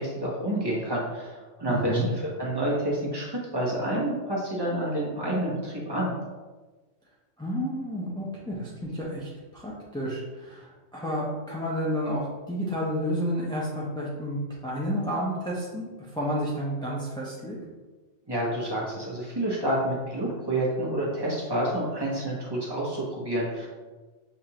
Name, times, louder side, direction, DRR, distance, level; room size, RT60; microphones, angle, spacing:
voice 1, 0.0-2.0 2.4-6.1 18.3-23.7, right 1 dB, 20° right, -6 dB, 1.0 m, -28 dB
voice 2, 1.7-2.1 7.4-17.6, equal, 5° left, -6 dB, 0.4 m, -31 dB
6.1 x 2.5 x 2.9 m, 1.3 s
omnidirectional pair, 1.3 m